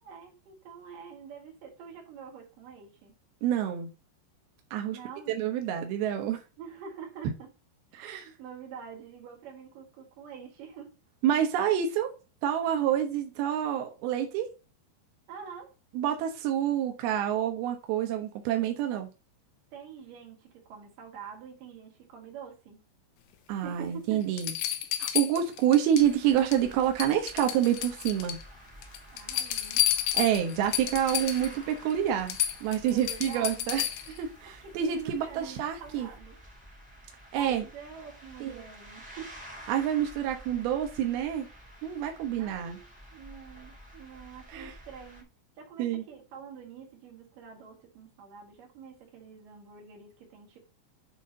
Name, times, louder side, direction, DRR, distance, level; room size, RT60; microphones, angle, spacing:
voice 1, 0.0-3.2 4.9-5.4 6.6-7.5 7.9-10.9 15.3-15.7 19.7-22.8 23.6-24.3 29.1-29.9 32.8-33.8 34.6-36.4 37.4-39.4 42.4-42.9 43.1-45.3 45.6-50.6, right 7 dB, 50° right, 3.5 m, -46 dB
voice 2, 3.4-3.9 4.7-5.0 5.3-6.4 7.9-8.2 11.2-12.1 12.4-14.5 15.9-19.1 23.5-24.5 25.0-28.4 30.1-32.4 32.6-36.1 37.3-37.6 38.4-38.6 39.7-41.5 41.8-42.8 44.5-44.7 45.8-46.0, right 10 dB, 80° right, 2.2 m, -28 dB
sound 1, 23.7-23.8 24.4-26.1 26.4-26.7 27.0-28.4 28.8-31.5 31.9-32.0 32.3-34.2 35.9-36.0, left 12 dB, 80° left, 2.5 m, -31 dB
sound 2, 26.0-45.2, equal, 5° right, 1.0 m, -50 dB
8.4 x 3.7 x 5.2 m
omnidirectional pair, 5.7 m